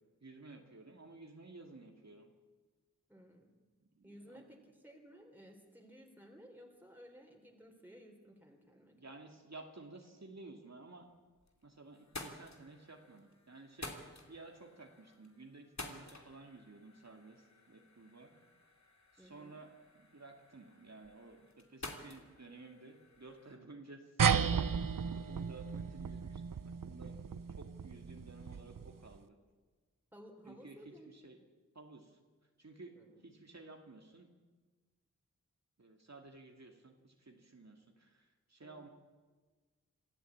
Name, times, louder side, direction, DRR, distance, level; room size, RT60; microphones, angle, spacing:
voice 1, 0.2-2.3 4.0-4.4 8.9-11.1 11.6-14.0 14.3-18.3 19.1-24.1 25.2-27.1 27.6-29.4 30.5-30.8 31.1-31.4 31.7-32.2 32.6-32.9 33.2-34.3 35.8-38.9, right 3 dB, 55° right, 3 dB, 2.3 m, -54 dB
voice 2, 3.1-3.5 4.0-9.0 19.2-19.6 30.1-31.4 32.9-33.2 38.6-38.9, equal, 5° right, 1 dB, 3.8 m, -57 dB
sound 1, 11.1-11.6 11.9-23.6, left 2 dB, 60° left, 2.9 m, -52 dB
sound 2, 24.2-29.1, right 6 dB, 85° right, 0.8 m, -34 dB
25.5 x 14.0 x 8.6 m, 1.4 s
wide cardioid pair, 55°, 32 cm